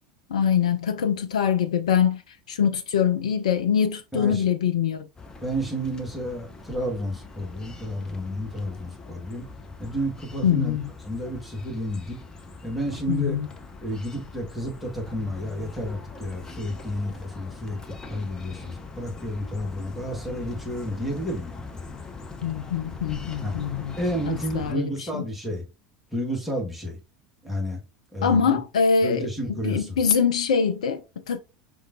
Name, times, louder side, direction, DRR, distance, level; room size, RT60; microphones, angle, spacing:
voice 1, 0.3-5.1 10.4-10.8 13.1-13.5 22.4-23.9 24.3-25.2 28.2-31.4, left 7 dB, 65° left, 0.3 m, -24 dB
voice 2, 4.1-4.4 5.4-9.5 9.8-10.8 11.0-12.2 12.6-13.4 13.8-17.8 18.1-21.6 23.4-23.7 24.0-25.7 26.1-27.0 27.4-27.8 28.1-28.6 29.0-30.0, equal, 5° right, 1.6 m, -31 dB
sound 1, 5.2-24.7, left 3 dB, 20° left, 0.7 m, -41 dB
5.3 x 3.7 x 2.6 m
figure-of-eight pair, 75°, 4 cm